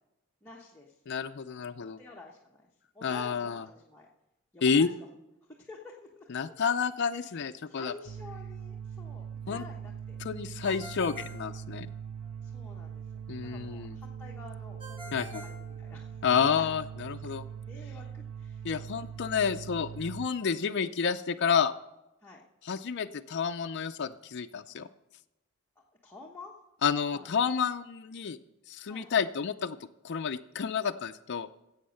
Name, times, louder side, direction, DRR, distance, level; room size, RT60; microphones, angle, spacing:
voice 1, 0.4-1.0 2.0-2.7 2.9-4.1 4.5-5.1 5.4-6.4 7.2-10.2 12.4-16.6 17.5-19.1 20.8-21.0 22.2-22.4 26.0-26.5 27.1-27.3 28.9-29.2, left 2 dB, 10° left, -4 dB, 1.1 m, -50 dB
voice 2, 1.1-2.0 3.0-3.6 4.6-4.9 6.3-7.9 9.5-9.6 10.2-11.9 13.3-14.0 15.1-15.4 16.2-17.4 18.6-21.7 22.6-24.9 26.8-28.4 28.7-29.8 30.0-31.5, left 6 dB, 55° left, 7 dB, 0.5 m, -30 dB
sound 1, 8.1-20.3, right 7 dB, 85° right, 0.5 m, -42 dB
Ringtone, 10.6-12.3 14.8-16.5, equal, 25° right, 1.5 m, -47 dB
15.5 x 7.9 x 6.5 m, 0.93 s
head